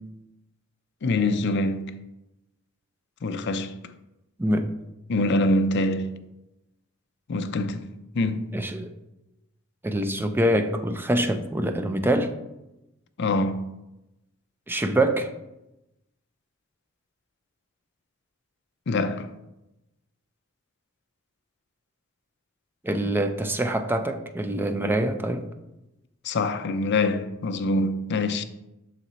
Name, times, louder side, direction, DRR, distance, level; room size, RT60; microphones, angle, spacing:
voice 1, 1.0-1.9 3.2-3.8 5.1-6.1 7.3-8.5 13.2-13.7 18.9-19.3 26.2-28.4, left 2 dB, 55° left, 0.5 m, -25 dB
voice 2, 4.4-4.8 8.5-8.9 9.8-12.3 14.7-15.3 22.8-25.5, right 1 dB, 10° right, 0.4 m, -25 dB
6.3 x 4.2 x 3.9 m
head